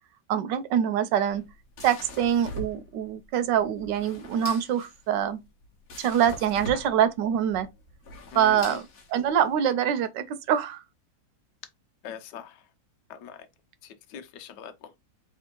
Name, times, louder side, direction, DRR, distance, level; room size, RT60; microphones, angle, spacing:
voice 1, 0.3-1.4 1.8-5.4 6.0-7.7 8.3-8.8 9.1-10.8, right 9 dB, 70° right, 1.2 m, -24 dB
sound 1, 1.2-9.5, left 1 dB, 50° left, 1.3 m, -42 dB
voice 2, 8.3-8.8 12.0-12.7 13.1-13.5 13.8-14.9, left 8 dB, 70° left, 1.3 m, -42 dB
3.5 x 3.3 x 4.4 m
omnidirectional pair, 2.1 m